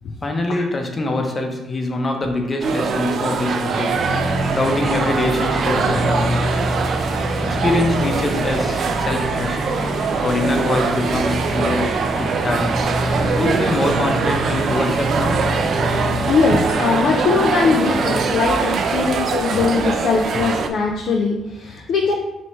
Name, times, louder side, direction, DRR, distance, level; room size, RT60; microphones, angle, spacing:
voice 1, 0.2-4.0 4.5-6.4 7.4-9.7 10.2-12.7 13.4-15.5 17.7-17.8, left 2 dB, 30° left, 3 dB, 0.7 m, -24 dB
sound 1, 2.6-20.7, right 5 dB, 60° right, 0.4 m, -22 dB
sound 2, 3.9-18.3, equal, 10° right, 0.8 m, -26 dB
voice 2, 16.3-22.1, left 5 dB, 65° left, 0 dB, 0.4 m, -20 dB
3.0 x 3.0 x 4.4 m, 0.95 s
cardioid pair, 90°, 0 cm